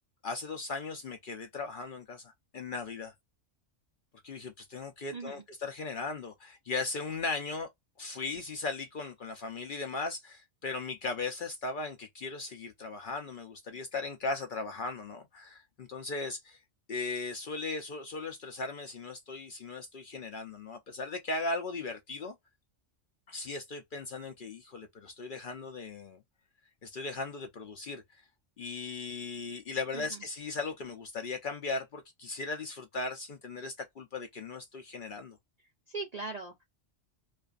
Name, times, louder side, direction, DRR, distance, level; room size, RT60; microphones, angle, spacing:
voice 1, 0.2-3.1 4.2-7.7 8.0-16.6 16.9-22.4 23.3-26.2 26.8-28.0 28.6-35.4, left 3 dB, 55° left, 0.6 m, -37 dB
voice 2, 5.1-5.4 29.9-30.2 35.9-36.6, right 3 dB, 55° right, 0.4 m, -39 dB
2.5 x 2.3 x 2.3 m
omnidirectional pair, 1.2 m